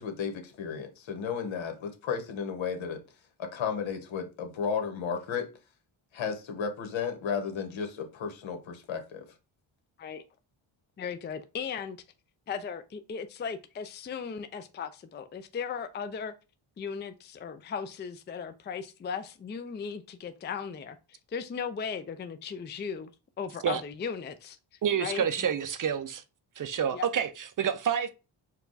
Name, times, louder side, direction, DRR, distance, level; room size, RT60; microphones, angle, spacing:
voice 1, 0.0-3.0 3.4-5.5 6.1-9.2, left 6 dB, 75° left, 1.2 m, -33 dB
voice 2, 11.0-12.0 12.5-16.3 16.8-23.1 23.4-24.6 25.0-25.5 26.9-27.1, left 6 dB, 25° left, 0.4 m, -37 dB
voice 3, 24.8-26.2 26.6-28.1, right 8 dB, 45° right, 0.5 m, -28 dB
4.6 x 2.3 x 3.9 m
cardioid pair, 90°, 47 cm